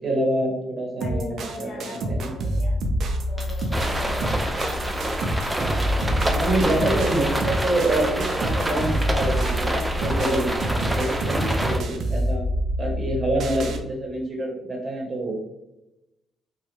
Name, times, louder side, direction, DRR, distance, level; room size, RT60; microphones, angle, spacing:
voice 1, 0.0-2.3 6.3-12.4 12.8-15.3, right 1 dB, 35° right, -2 dB, 1.1 m, -26 dB
voice 2, 1.0-2.8 3.3-4.5, left 1 dB, 55° left, -2 dB, 1.1 m, -39 dB
sound 1, 1.0-13.8, equal, 65° right, 0.5 m, -27 dB
Coin (dropping), 3.3-7.2, left 1 dB, 15° left, 1.0 m, -45 dB
sound 2, 3.7-11.8, right 1 dB, 10° right, 0.4 m, -27 dB
3.1 x 2.4 x 3.1 m, 0.90 s
cardioid pair, 90°, 0 cm